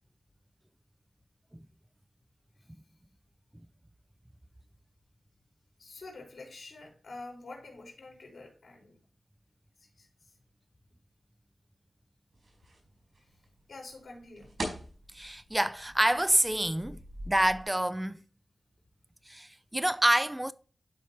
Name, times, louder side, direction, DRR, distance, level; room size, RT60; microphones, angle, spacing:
voice 1, 5.8-9.0 10.0-10.1 13.7-14.5, left 2 dB, 80° left, 3.9 m, -47 dB
sound 1, 12.3-17.6, right 1 dB, 75° right, 4.2 m, -44 dB
voice 2, 15.1-17.0 17.3-18.2 19.3-20.5, right 1 dB, 10° right, 0.3 m, -27 dB
12.0 x 4.4 x 2.8 m
wide cardioid pair, 85°, 0 cm